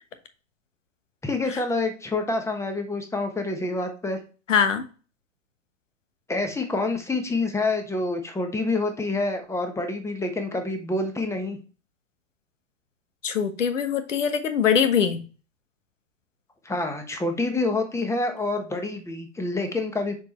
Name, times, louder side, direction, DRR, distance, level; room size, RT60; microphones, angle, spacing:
voice 1, 1.2-4.2 6.3-11.6 16.6-20.2, left 2 dB, 5° left, 1.2 m, -27 dB
voice 2, 4.5-4.8 13.2-15.2, left 7 dB, 75° left, 1.3 m, -22 dB
6.6 x 4.8 x 3.0 m
figure-of-eight pair, 105°, 38 cm